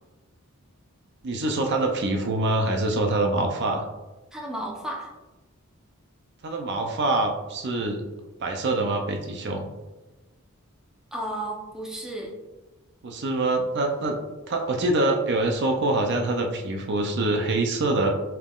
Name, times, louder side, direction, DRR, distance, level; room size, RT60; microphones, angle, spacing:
voice 1, 1.2-3.9 6.4-8.0 8.4-9.7 13.0-14.2 14.5-18.1, right 2 dB, 55° right, 3 dB, 0.5 m, -25 dB
voice 2, 4.3-5.1 11.1-12.3, right 1 dB, 5° right, -3 dB, 0.7 m, -33 dB
5.7 x 3.6 x 2.4 m, 1.1 s
head